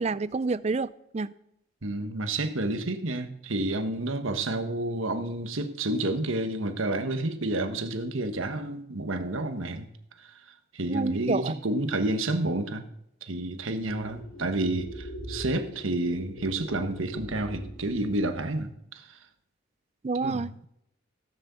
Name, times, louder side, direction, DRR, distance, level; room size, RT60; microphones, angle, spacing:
voice 1, 0.0-1.3 10.9-11.5 20.0-20.5, right 4 dB, 35° right, 17 dB, 0.4 m, -28 dB
voice 2, 1.8-9.9 10.2-10.4 10.7-12.9 13.2-19.2 20.2-20.5, right 2 dB, 85° right, 7 dB, 1.4 m, -30 dB
sound 1, 13.8-18.6, right 1 dB, 80° left, 3.0 m, -42 dB
16.0 x 7.7 x 7.0 m, 0.78 s
head